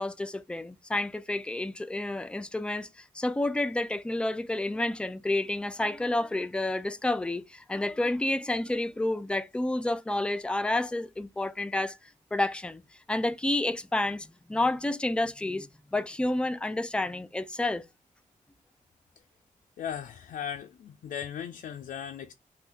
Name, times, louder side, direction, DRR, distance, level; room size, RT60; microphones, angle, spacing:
voice 1, 0.0-12.0 12.3-12.8 13.1-17.8, left 2 dB, 5° left, 0.3 m, -30 dB
voice 2, 19.8-22.3, left 8 dB, 85° left, 0.4 m, -37 dB
2.7 x 2.6 x 3.5 m
wide cardioid pair, 110°, 14 cm